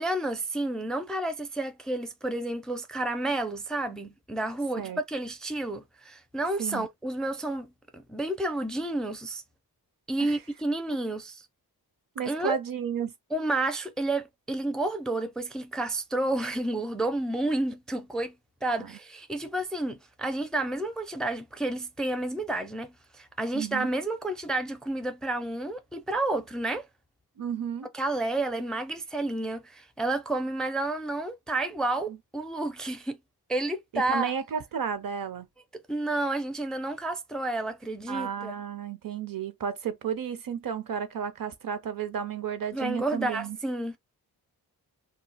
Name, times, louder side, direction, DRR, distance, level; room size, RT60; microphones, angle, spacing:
voice 1, 0.0-9.4 10.1-11.5 12.3-12.6 13.3-18.3 18.6-26.9 27.9-33.2 33.5-34.3 35.9-38.5 42.7-44.0, right 2 dB, ahead, 0.4 m, -30 dB
voice 2, 12.2-13.1 18.8-18.9 23.5-23.9 27.4-27.9 32.1-32.2 33.9-35.5 38.1-43.6, right 7 dB, 55° right, 0.8 m, -33 dB
2.3 x 2.3 x 3.9 m
cardioid pair, 90°, 40 cm